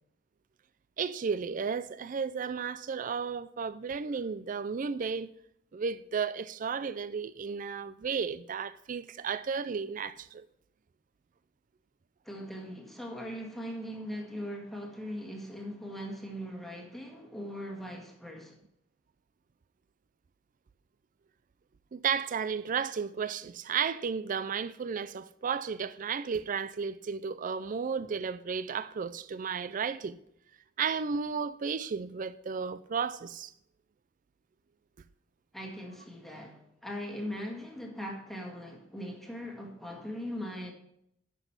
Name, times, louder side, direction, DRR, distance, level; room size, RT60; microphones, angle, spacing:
voice 1, 1.0-5.3 5.7-10.4 21.9-30.2 30.8-33.5, right 6 dB, 45° right, 0.4 m, -33 dB
voice 2, 12.3-18.6 35.5-40.7, equal, ahead, 1.7 m, -40 dB
10.5 x 6.1 x 5.7 m
head